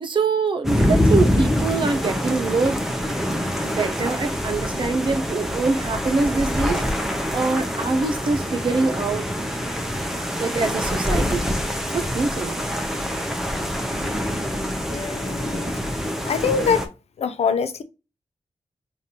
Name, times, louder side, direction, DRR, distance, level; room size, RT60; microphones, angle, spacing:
voice 1, 0.0-2.8 3.6-6.8 7.3-9.3 10.4-11.4 11.9-12.6, right 3 dB, 50° right, 0.8 m, -24 dB
sound 1, 0.6-16.9, equal, 5° right, 0.6 m, -25 dB
voice 2, 14.9-15.7 16.2-16.9 17.2-17.8, left 6 dB, 90° left, 0.5 m, -24 dB
5.1 x 2.6 x 2.8 m
wide cardioid pair, 140°, 10 cm